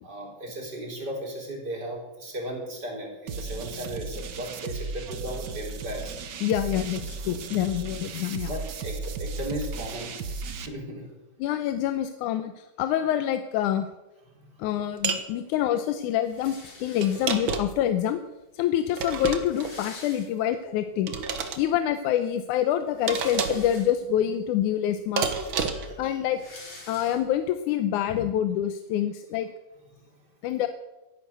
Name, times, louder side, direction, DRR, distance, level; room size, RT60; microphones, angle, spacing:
voice 1, 0.0-6.2 8.5-10.1 10.5-11.2 14.3-14.6 25.5-26.2 29.9-30.2, right 1 dB, 30° right, 0 dB, 4.2 m, -36 dB
sound 1, 3.3-10.7, right 4 dB, 75° right, 0.9 m, -35 dB
voice 2, 6.4-8.5 11.4-13.9 14.6-18.2 18.5-21.1 21.6-25.3 26.0-26.4 26.9-29.5 30.4-30.7, left 11 dB, 80° left, 9 dB, 2.1 m, -26 dB
sound 2, 15.0-15.3 17.0-17.9 19.0-19.7 21.1-21.6 23.1-23.7 25.2-26.0, right 5 dB, 50° right, 1.7 m, -29 dB
sound 3, 16.2-17.7 18.5-18.6 18.8-18.9 19.2-20.8 21.2-21.3 22.7-24.2 24.9-25.0 25.2-27.6, left 2 dB, 50° left, 5.6 m, -47 dB
14.0 x 11.0 x 8.1 m, 1.0 s
omnidirectional pair, 3.6 m